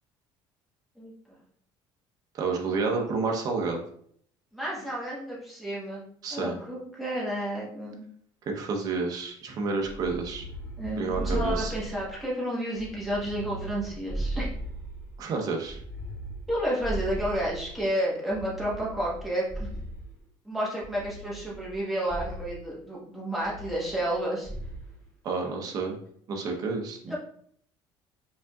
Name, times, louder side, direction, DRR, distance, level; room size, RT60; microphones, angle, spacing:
voice 1, 2.3-3.8 6.2-6.6 8.5-10.4 11.0-11.7 15.2-15.8 25.2-26.0 26.3-27.2, right 4 dB, 40° right, 2 dB, 0.8 m, -30 dB
voice 2, 4.5-6.0 6.3-8.0 10.8-14.5 16.5-19.8 20.4-24.5 27.1-27.2, right 1 dB, ahead, -6 dB, 1.3 m, -31 dB
sound 1, 9.8-12.3 12.7-15.2 15.6-17.8 18.3-20.2 20.8-21.8 22.1-22.6 23.4-24.2 24.4-24.9, right 1 dB, 15° left, 1.7 m, -37 dB
5.4 x 3.6 x 2.3 m, 0.63 s
cardioid pair, 165°, 10 cm